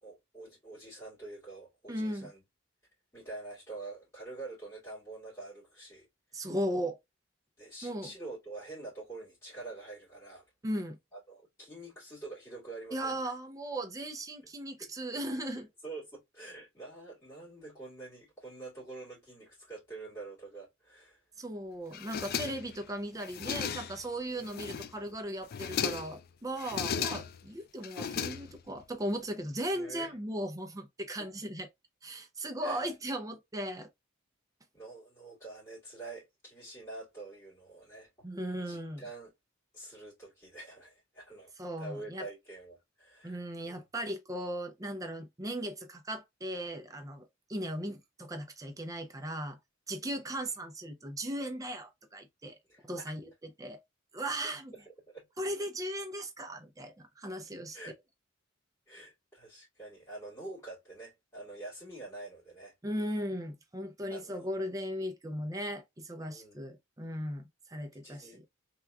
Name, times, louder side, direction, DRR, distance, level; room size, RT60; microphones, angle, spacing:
voice 1, 0.0-2.4 3.1-6.1 7.6-10.5 11.1-13.3 14.4-14.5 14.8-14.9 15.6-21.2 24.3-24.6 26.8-26.9 29.7-30.1 31.2-31.3 32.6-32.9 34.7-38.1 38.6-39.3 39.7-41.5 41.8-43.8 50.0-50.2 52.7-53.1 54.7-55.3 57.7-57.9 58.9-62.7 64.1-64.5 66.2-66.6 67.9-68.4, right 2 dB, 15° left, 2.3 m, -46 dB
voice 2, 1.9-2.3 6.3-7.0 7.8-8.1 10.6-11.0 12.9-15.7 21.4-31.7 32.0-33.9 38.2-39.0 41.6-42.2 43.2-49.6 49.9-52.5 52.8-53.3 53.6-53.8 54.1-54.7 55.4-57.8 62.8-68.4, right 1 dB, 15° right, 0.5 m, -37 dB
sound 1, 21.9-22.8 23.2-24.1 24.4-25.1 25.4-26.2 26.6-27.5 27.8-28.8, left 7 dB, 50° left, 0.3 m, -36 dB
3.5 x 2.9 x 2.3 m
head